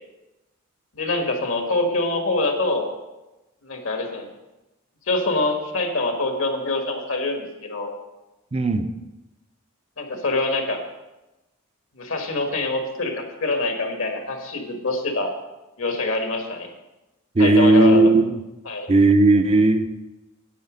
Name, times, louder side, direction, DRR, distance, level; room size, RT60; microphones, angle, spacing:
voice 1, 0.9-2.9 3.6-4.3 5.1-7.9 10.0-10.8 12.0-15.3 15.8-16.7 17.4-18.0 18.6-18.9, left 2 dB, 65° left, 3 dB, 1.7 m, -25 dB
voice 2, 8.5-8.9 17.4-18.4 18.9-19.8, right 2 dB, 30° right, 7 dB, 0.5 m, -16 dB
9.4 x 8.2 x 5.1 m, 1.0 s
head